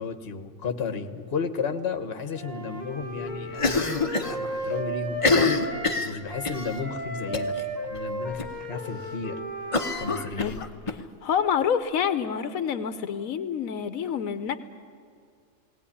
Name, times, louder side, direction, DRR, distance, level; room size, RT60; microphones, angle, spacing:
voice 1, 0.0-5.5 6.0-7.6 7.9-9.4 10.0-10.6, left 5 dB, 50° left, 9 dB, 1.4 m, -33 dB
Wind instrument woodwind instrument, 2.3-6.0 6.3-10.3, right 1 dB, 30° right, 3.5 m, -34 dB
Cough, 3.6-4.4 4.6-4.7 5.1-6.7 7.3-7.6 7.9-8.0 8.4-8.5 9.7-11.0, left 3 dB, 25° left, 1.0 m, -25 dB
voice 2, 10.4-14.6, left 7 dB, 80° left, 12 dB, 1.2 m, -28 dB
19.0 x 18.0 x 10.0 m, 2.3 s
omnidirectional pair, 1.4 m